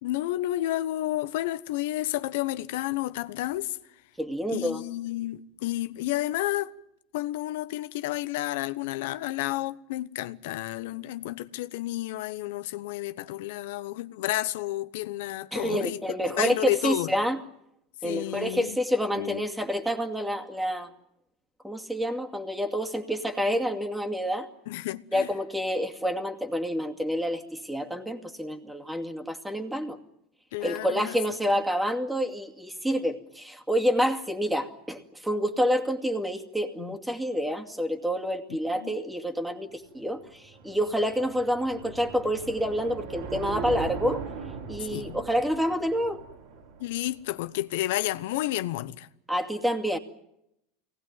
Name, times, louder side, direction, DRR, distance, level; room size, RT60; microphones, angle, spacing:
voice 1, 0.0-3.8 4.5-6.7 7.1-16.0 16.4-17.1 18.0-18.8 19.2-19.5 24.7-25.3 30.5-31.2 36.8-36.9 38.5-38.9 44.8-45.2 46.8-49.1, left 15 dB, 75° left, 1.0 m, -31 dB
voice 2, 4.2-4.8 15.5-17.4 18.0-20.9 21.6-24.5 25.1-30.0 30.6-44.2 44.7-46.2 49.3-50.0, equal, 5° right, 2.4 m, -28 dB
sound 1, 39.9-47.3, right 5 dB, 75° right, 3.7 m, -39 dB
24.0 x 19.0 x 9.4 m
supercardioid pair, 105°, 0 cm